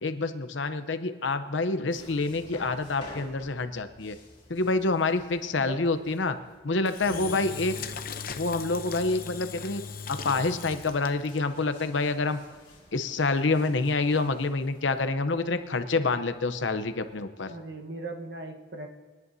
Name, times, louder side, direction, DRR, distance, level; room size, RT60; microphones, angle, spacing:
voice 1, 0.0-4.2 4.5-6.4 6.6-7.7 8.4-9.8 10.1-12.4 12.9-17.5, left 3 dB, 90° left, 10 dB, 0.8 m, -27 dB
sound 1, 1.9-17.2, left 1 dB, 30° left, 2.1 m, -53 dB
Engine / Drill, 6.8-11.4, left 6 dB, 50° left, 0.8 m, -38 dB
voice 2, 7.1-8.0 17.5-18.9, right 2 dB, 60° right, 3 dB, 1.3 m, -40 dB
26.5 x 11.0 x 2.8 m, 1.4 s
head